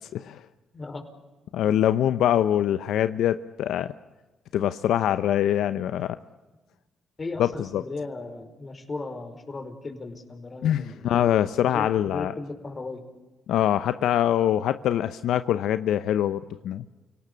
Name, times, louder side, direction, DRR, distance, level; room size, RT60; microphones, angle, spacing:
voice 1, 0.7-1.0 7.2-11.3 11.7-13.0, left 3 dB, 35° left, 7 dB, 5.0 m, -36 dB
voice 2, 1.5-3.9 4.5-6.2 7.4-7.8 10.6-12.3 13.5-16.8, left 11 dB, 80° left, 12 dB, 0.7 m, -24 dB
29.5 x 18.5 x 8.4 m, 1.2 s
cardioid pair, 75°, 0 cm